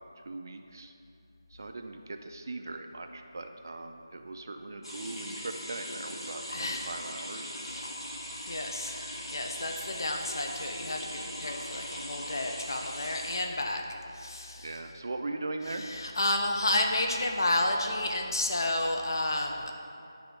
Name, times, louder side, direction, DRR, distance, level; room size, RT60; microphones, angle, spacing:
voice 1, 0.3-0.9 1.5-7.7 14.6-15.9, right 2 dB, 40° right, 5 dB, 0.3 m, -40 dB
sound 1, 4.8-13.4, equal, 85° left, 1.3 m, -40 dB
voice 2, 6.5-6.9 7.7-7.9 8.5-8.9 9.3-13.8 14.1-14.8 15.7-19.7, left 1 dB, 55° left, 2 dB, 0.5 m, -31 dB
9.6 x 3.4 x 3.8 m, 2.6 s
figure-of-eight pair, 170°, 2 cm